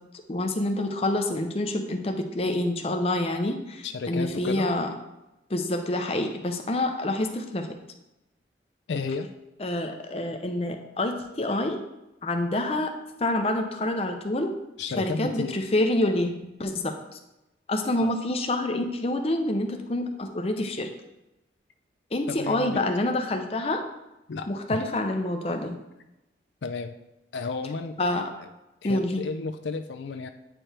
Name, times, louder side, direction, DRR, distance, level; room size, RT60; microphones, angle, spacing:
voice 1, 0.3-4.9 5.5-7.7 9.6-11.8 12.2-12.9 13.2-14.5 15.0-16.3 16.6-16.9 17.7-20.9 22.1-23.8 24.5-25.8 28.0-28.3 28.8-29.3, left 1 dB, 35° left, 5 dB, 0.6 m, -27 dB
voice 2, 3.8-4.7 8.9-9.3 14.8-15.6 18.0-18.1 22.3-22.9 24.3-24.8 26.6-26.9 27.3-28.0 28.8-30.3, left 4 dB, 75° left, 6 dB, 0.4 m, -32 dB
8.8 x 4.6 x 3.3 m, 0.97 s
head